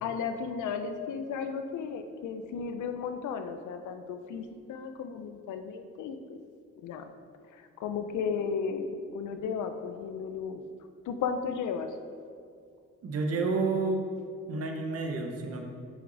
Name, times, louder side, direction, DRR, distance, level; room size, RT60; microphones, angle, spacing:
voice 1, 0.0-6.4 6.8-7.1 7.5-10.6 11.1-12.0, left 6 dB, 75° left, 7 dB, 0.7 m, -34 dB
voice 2, 13.0-14.0 14.5-15.6, right 3 dB, 50° right, 3 dB, 1.0 m, -30 dB
8.2 x 5.9 x 4.0 m, 2.3 s
cardioid pair, 90°, 30 cm